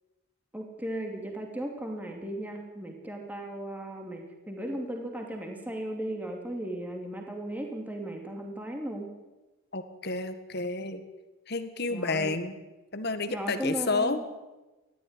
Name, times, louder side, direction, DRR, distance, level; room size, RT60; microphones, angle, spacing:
voice 1, 0.5-9.1 11.9-12.4 13.3-14.2, right 1 dB, 10° right, 2 dB, 2.8 m, -36 dB
voice 2, 9.7-11.0 11.5-12.6 12.9-14.2, left 3 dB, 50° left, 10 dB, 1.7 m, -30 dB
19.5 x 14.0 x 9.8 m, 1.1 s
head